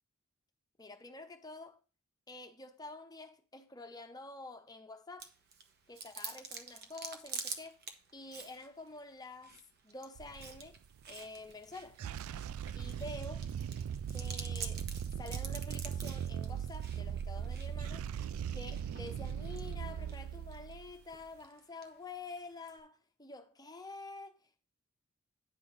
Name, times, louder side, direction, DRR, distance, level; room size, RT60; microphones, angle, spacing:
voice 1, 0.8-1.8 2.3-5.3 5.9-7.8 8.1-9.6 9.8-10.8 11.1-12.0 12.7-13.5 14.1-14.8 15.2-18.1 18.5-24.4, left 2 dB, 20° left, 0.8 m, -48 dB
Chewing mastication, 5.2-22.8, right 5 dB, 50° right, 1.0 m, -49 dB
sound 1, 10.2-10.9 11.9-21.2, right 8 dB, 85° right, 0.3 m, -39 dB
9.6 x 3.7 x 6.2 m
head